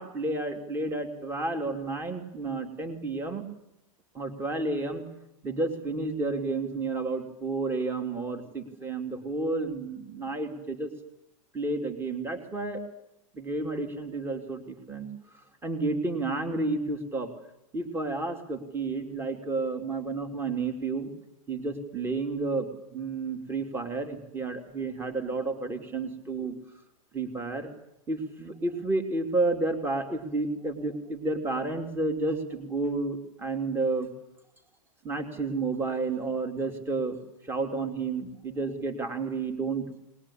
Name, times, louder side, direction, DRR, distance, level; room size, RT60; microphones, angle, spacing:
voice 1, 0.0-3.4 4.1-5.0 5.4-10.9 11.5-12.8 13.3-15.1 15.6-17.3 17.7-21.1 21.5-26.5 27.1-27.7 28.1-34.1 35.0-39.8, right 3 dB, 15° right, 7 dB, 2.6 m, -31 dB
22.0 x 20.0 x 9.9 m, 0.83 s
hypercardioid pair, 140°, 17 cm